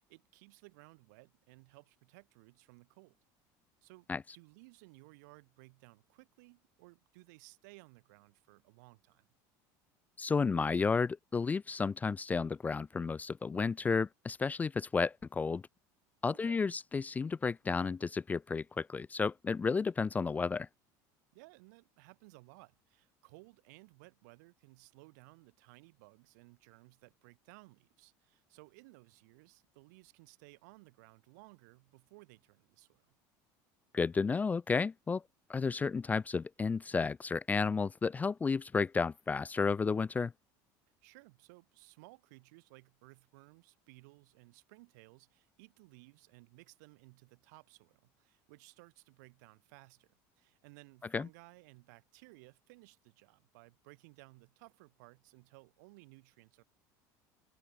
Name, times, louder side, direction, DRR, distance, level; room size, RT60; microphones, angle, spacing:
voice 1, 0.0-3.2 3.8-4.1 4.3-9.3 16.4-16.7 21.3-33.1 41.0-50.1 50.4-56.6, right 26 dB, 85° right, 2.9 m, -59 dB
voice 2, 10.2-15.6 16.2-20.7 33.9-35.2 35.5-40.3 51.1-51.3, left 5 dB, 15° left, 0.3 m, -32 dB
supercardioid pair, 125°, 9 cm